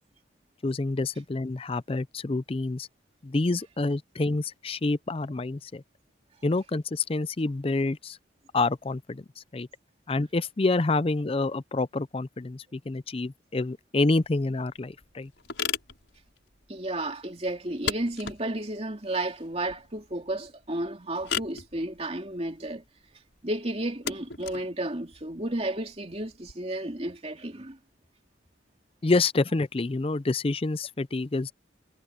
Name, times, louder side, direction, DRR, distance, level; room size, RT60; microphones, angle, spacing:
voice 1, 0.6-2.9 3.2-5.8 6.4-8.2 8.5-9.2 9.5-9.7 10.1-15.3 29.0-31.5, left 3 dB, 30° left, 0.5 m, -27 dB
sound 1, 14.2-26.5, left 7 dB, 70° left, 6.4 m, -38 dB
voice 2, 16.7-22.8 23.4-27.8, right 1 dB, 30° right, 2.7 m, -32 dB
head